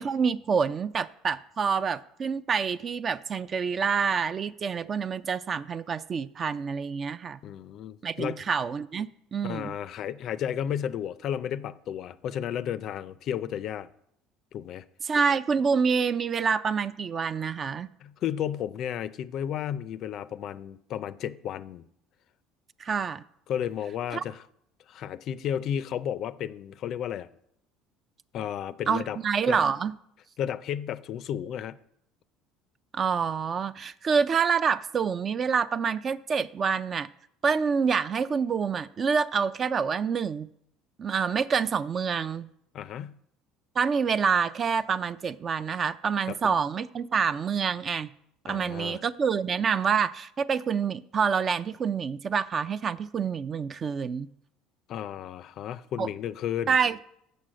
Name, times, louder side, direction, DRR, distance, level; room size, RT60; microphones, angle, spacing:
voice 1, 0.0-7.4 8.0-9.7 15.0-17.9 22.8-23.2 24.1-24.2 28.9-30.0 32.9-37.1 37.4-40.5 41.0-42.5 43.8-48.1 48.4-54.3 56.0-56.1 56.7-57.0, right 6 dB, 35° right, 0.3 m, -27 dB
voice 2, 7.4-8.4 9.4-13.9 14.5-14.8 18.0-21.9 23.5-24.4 24.9-27.3 28.3-29.2 29.5-29.6 30.4-31.8 42.7-43.2 46.3-46.6 48.5-49.0 54.9-56.8, left 9 dB, 50° left, 0.4 m, -33 dB
6.8 x 6.3 x 7.5 m
cardioid pair, 125°, 0 cm